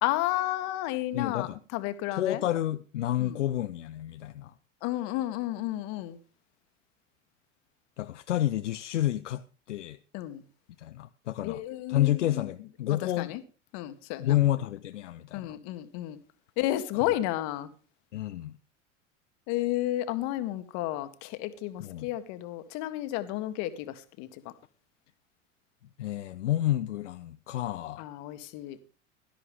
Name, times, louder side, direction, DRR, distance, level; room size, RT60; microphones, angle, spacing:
voice 1, 0.0-2.4 3.2-3.4 4.8-6.2 10.1-10.4 11.4-12.4 12.9-13.4 13.7-14.4 15.3-16.2 16.6-17.7 19.5-24.4 28.0-28.8, left 15 dB, 50° left, 1.5 m, -32 dB
voice 2, 1.1-1.6 2.1-4.5 8.0-10.0 10.8-11.6 11.9-13.3 14.2-15.6 16.9-17.1 18.1-18.5 21.8-22.1 26.0-28.0, left 13 dB, 70° left, 0.7 m, -30 dB
16.5 x 12.5 x 3.6 m
figure-of-eight pair, 80°, 37 cm